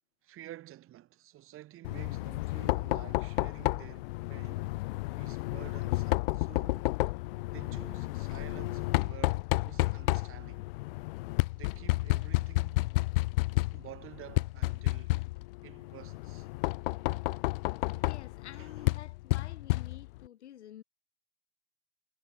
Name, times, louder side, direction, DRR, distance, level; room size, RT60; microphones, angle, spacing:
voice 1, 0.2-4.8 5.2-6.9 7.5-10.6 11.5-12.9 13.6-15.2 15.6-16.5 18.5-18.7, right 14 dB, 35° right, 5.8 m, -51 dB
Knock, 1.8-20.3, left 21 dB, 50° left, 0.7 m, -31 dB
voice 2, 17.8-20.8, left 11 dB, 70° left, 2.5 m, -49 dB
figure-of-eight pair, 90°, 35 cm